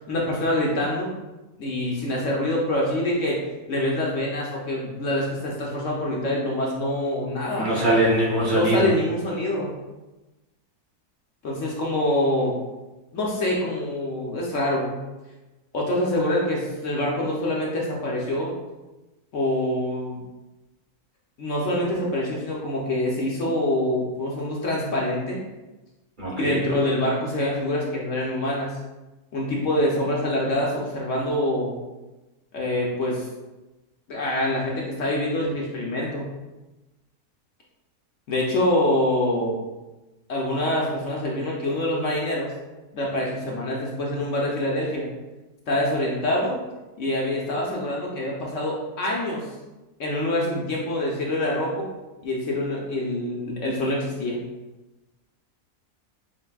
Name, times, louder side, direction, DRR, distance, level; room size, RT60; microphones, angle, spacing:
voice 1, 0.1-1.1 1.6-3.4 3.7-7.7 8.5-9.7 11.4-12.5 13.1-15.0 15.7-18.5 19.3-20.2 21.4-25.4 26.4-28.8 29.3-31.7 32.5-33.2 34.1-36.3 38.3-39.6 40.3-42.5 42.9-45.1 45.7-46.6 47.0-49.5 50.0-51.9 52.2-54.4, left 1 dB, 60° left, -3 dB, 1.0 m, -25 dB
voice 2, 7.6-8.9 26.2-26.6, right 1 dB, 40° right, -6 dB, 0.9 m, -22 dB
7.4 x 2.6 x 2.3 m, 1.1 s
omnidirectional pair, 1.6 m